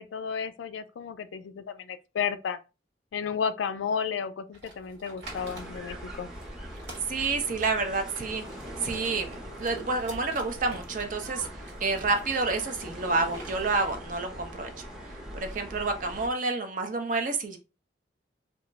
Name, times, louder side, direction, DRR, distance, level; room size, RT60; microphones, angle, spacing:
voice 1, 0.0-2.6 3.1-6.3, left 6 dB, 85° left, 0.3 m, -32 dB
sound 1, 4.5-13.5, right 1 dB, 75° right, 1.3 m, -49 dB
sound 2, 5.2-16.3, equal, 5° right, 0.6 m, -42 dB
voice 2, 7.1-8.4 8.8-11.5 11.8-14.7 15.3-17.6, right 3 dB, 45° right, 0.5 m, -29 dB
2.3 x 2.0 x 3.8 m
head